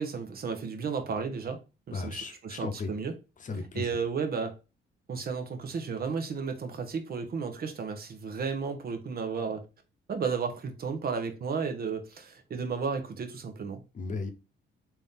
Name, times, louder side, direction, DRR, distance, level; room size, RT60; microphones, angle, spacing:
voice 1, 0.0-1.6 1.9-3.1 3.6-4.5 5.1-9.6 10.1-13.8, right 5 dB, 50° right, 0.9 m, -33 dB
voice 2, 1.9-2.9 3.4-3.8 13.9-14.3, left 4 dB, 40° left, 0.8 m, -35 dB
3.4 x 2.8 x 3.5 m
cardioid pair, 90°, 20 cm